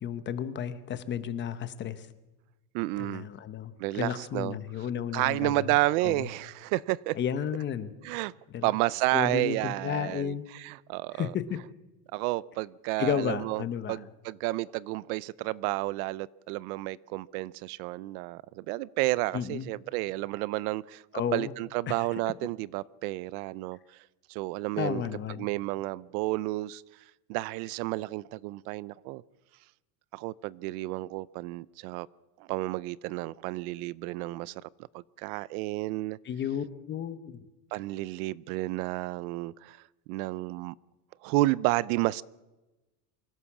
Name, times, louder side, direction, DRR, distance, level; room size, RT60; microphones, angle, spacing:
voice 1, 0.0-2.1 3.0-5.7 6.0-6.3 7.1-7.9 8.5-8.7 9.1-10.5 11.1-11.6 13.0-14.0 19.3-19.7 21.1-21.5 21.9-22.0 24.8-25.5 36.2-37.4, left 8 dB, 25° left, 0.9 m, -33 dB
voice 2, 2.7-3.3 3.8-4.6 5.1-7.2 8.0-8.3 8.6-11.3 12.1-21.0 21.3-23.8 24.3-25.0 25.4-26.8 27.3-29.2 30.1-32.1 32.4-34.7 34.9-36.2 37.7-39.8 40.1-40.7 41.2-42.2, right 19 dB, 65° right, 0.6 m, -31 dB
24.5 x 16.0 x 7.2 m
cardioid pair, 175°, 48 cm